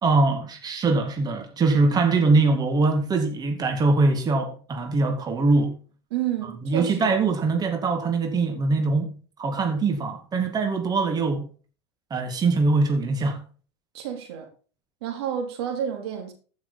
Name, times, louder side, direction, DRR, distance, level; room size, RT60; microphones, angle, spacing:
voice 1, 0.0-5.7 6.6-9.1 9.4-11.5 12.1-13.4, right 3 dB, 30° right, 2.1 m, -22 dB
voice 2, 6.1-7.2 13.9-14.5 15.0-16.3, right 9 dB, 75° right, 3.0 m, -30 dB
14.5 x 6.3 x 4.1 m
hypercardioid pair, 95°, 14 cm